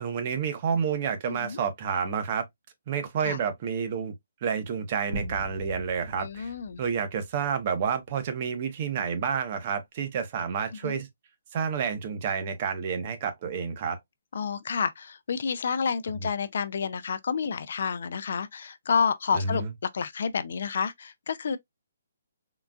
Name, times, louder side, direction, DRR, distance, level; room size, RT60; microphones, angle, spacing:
voice 1, 0.0-2.4 2.9-4.1 4.4-6.5 6.8-11.1 11.5-14.0 19.3-19.7, right 6 dB, 35° right, 0.7 m, -29 dB
voice 2, 1.3-1.6 3.2-3.4 6.2-6.8 10.8-11.0 14.3-19.6 19.9-21.6, left 6 dB, 60° left, 0.4 m, -29 dB
sound 1, 5.1-7.9, right 1 dB, 70° right, 1.2 m, -41 dB
3.8 x 2.3 x 2.2 m
hypercardioid pair, 160°, 0 cm